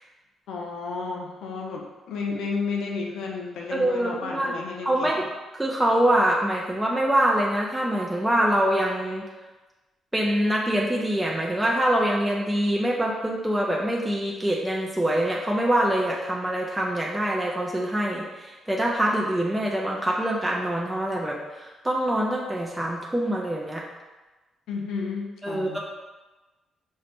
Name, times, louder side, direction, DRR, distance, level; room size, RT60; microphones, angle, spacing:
voice 1, 0.5-5.2 24.7-25.8, left 4 dB, 85° left, 0 dB, 0.5 m, -32 dB
voice 2, 3.7-4.5 4.8-5.2 5.5-9.2 10.1-23.8 25.4-25.8, right 1 dB, 5° right, -3 dB, 0.5 m, -24 dB
6.2 x 2.1 x 2.9 m, 1.2 s
cardioid pair, 110°, 0 cm